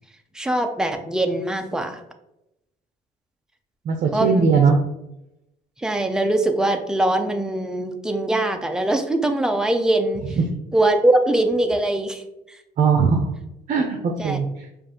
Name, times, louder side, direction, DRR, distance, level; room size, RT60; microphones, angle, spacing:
voice 1, 0.3-2.0 4.1-4.5 5.8-10.4 10.7-12.6 14.2-14.4, right 1 dB, 5° right, 5 dB, 0.4 m, -22 dB
voice 2, 3.8-4.8 10.4-10.5 12.8-13.3 13.7-14.7, right 5 dB, 50° right, 3 dB, 0.6 m, -19 dB
5.2 x 2.5 x 2.9 m, 0.87 s
cardioid pair, 110°, 17 cm